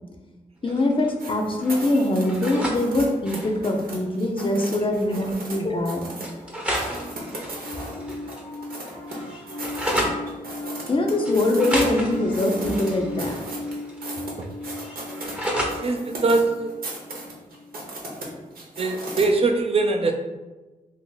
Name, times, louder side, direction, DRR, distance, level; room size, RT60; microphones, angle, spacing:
voice 1, 0.6-6.1 7.8-8.2 10.9-13.4, left 1 dB, 35° left, 2 dB, 0.6 m, -23 dB
sound 1, 0.7-1.3 1.6-2.8 3.1-3.6 4.7-4.8 5.1-5.2 6.2-8.4 8.7-10.2 11.2-14.0 14.3-15.8, equal, 5° right, 0.8 m, -32 dB
sound 2, 1.2-5.6 5.8-6.3 6.7-9.2 9.5-11.9 12.1-19.2, right 2 dB, 80° right, 0.9 m, -37 dB
Piano, 6.8-18.3, left 2 dB, 85° left, 0.9 m, -37 dB
voice 2, 6.8-7.1 14.4-14.5 15.7-16.8 18.8-20.1, right 3 dB, 40° right, 3 dB, 0.5 m, -23 dB
2.8 x 2.7 x 3.9 m, 1.1 s
cardioid pair, 55°, 15 cm